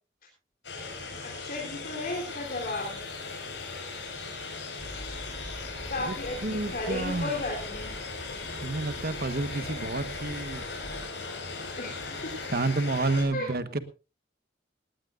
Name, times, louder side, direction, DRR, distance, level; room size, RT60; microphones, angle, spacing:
sound 1, 0.6-13.2, left 4 dB, 80° left, 5.3 m, -38 dB
voice 1, 1.3-3.0 5.9-7.9 8.7-8.9 9.5-9.7 11.8-12.2 13.3-13.5, left 2 dB, 50° left, -1 dB, 3.7 m, -34 dB
Car, 4.8-11.1, equal, 35° left, 4.7 m, -44 dB
voice 2, 6.4-7.4 8.6-10.6 12.5-13.8, right 2 dB, 60° right, 11 dB, 1.3 m, -29 dB
19.0 x 18.0 x 2.5 m, 0.32 s
head